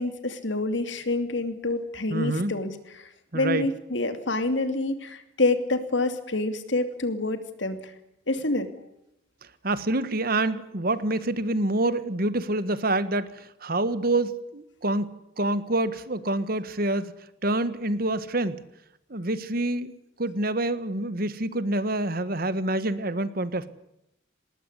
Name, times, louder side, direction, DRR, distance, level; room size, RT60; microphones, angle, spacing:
voice 1, 0.0-7.9 8.3-8.7, left 2 dB, 70° left, 9 dB, 2.8 m, -27 dB
voice 2, 2.1-2.5 3.3-3.7 9.6-15.1 15.4-17.1 17.4-18.6 19.1-19.9 20.2-23.7, right 2 dB, 50° right, 14 dB, 1.5 m, -27 dB
20.0 x 19.5 x 9.9 m, 0.83 s
head